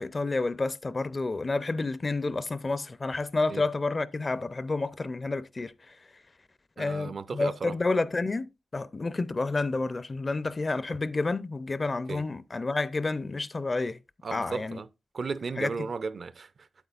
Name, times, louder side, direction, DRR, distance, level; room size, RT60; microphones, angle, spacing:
voice 1, 0.0-5.7 6.8-14.0 14.3-14.8 15.6-15.7, left 3 dB, 35° left, 0.4 m, -30 dB
voice 2, 6.8-7.8 12.1-12.2 14.2-14.9 15.1-16.7, right 4 dB, 55° right, 0.4 m, -35 dB
8.6 x 8.1 x 2.4 m
wide cardioid pair, 90°, 0 cm